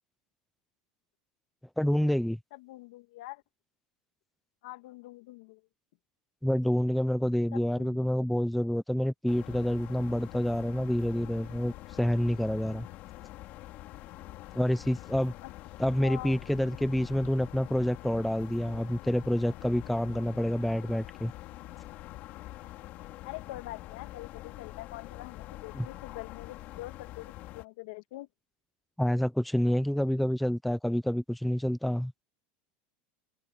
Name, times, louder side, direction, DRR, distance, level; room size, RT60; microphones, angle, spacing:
voice 1, 1.8-2.4 6.4-12.9 14.5-15.3 15.8-21.3 25.7-25.9 29.0-32.1, equal, ahead, 0.5 m, -28 dB
voice 2, 2.5-3.4 4.6-5.6 7.5-8.3 15.4-15.5 16.0-16.4 23.2-28.3, left 18 dB, 75° left, 2.2 m, -44 dB
sound 1, 9.3-27.6, left 16 dB, 45° left, 2.8 m, -45 dB
supercardioid pair, 165°, 4 cm